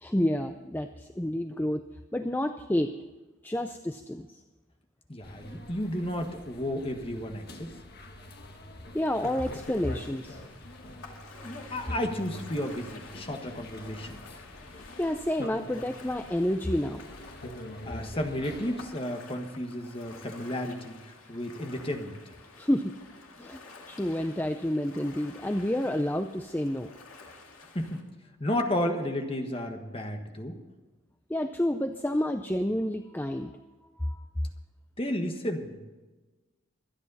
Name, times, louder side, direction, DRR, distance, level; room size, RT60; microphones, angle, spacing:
voice 1, 0.0-1.8 2.1-2.9 3.4-4.3 8.9-10.4 15.0-17.0 22.6-22.9 23.4-23.6 23.9-26.9 31.3-33.5 34.0-34.2, left 1 dB, 10° left, 7 dB, 0.5 m, -29 dB
voice 2, 5.1-7.7 11.3-14.2 17.8-22.1 27.7-28.0 28.4-30.6 35.0-35.8, left 1 dB, 25° left, 4 dB, 1.5 m, -32 dB
sound 1, 5.2-18.9, left 1 dB, 50° left, 1.5 m, -45 dB
Ocean, 9.0-28.0, left 3 dB, 90° left, 2.4 m, -50 dB
24.5 x 9.8 x 4.1 m, 1.2 s
head